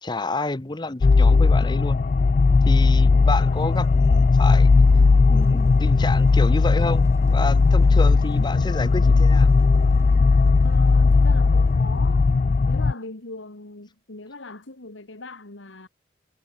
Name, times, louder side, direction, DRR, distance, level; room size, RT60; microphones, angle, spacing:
voice 1, 0.0-2.0 2.6-4.9 5.3-9.5, left 2 dB, 25° left, 0.8 m, -29 dB
sound 1, 1.0-12.9, left 4 dB, 40° left, 0.4 m, -17 dB
sound 2, 3.3-12.4, equal, 15° right, 3.4 m, -50 dB
voice 2, 10.6-12.3 12.7-15.9, left 3 dB, 80° left, 2.2 m, -39 dB
head